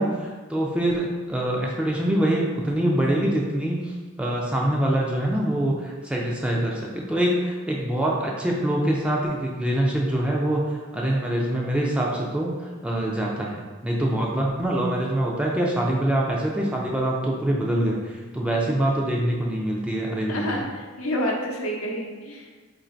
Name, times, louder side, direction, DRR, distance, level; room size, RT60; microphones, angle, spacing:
voice 1, 0.0-20.6, right 1 dB, 5° right, -3 dB, 0.4 m, -25 dB
voice 2, 20.3-22.6, equal, 85° left, -1 dB, 0.7 m, -29 dB
3.0 x 2.6 x 4.3 m, 1.4 s
head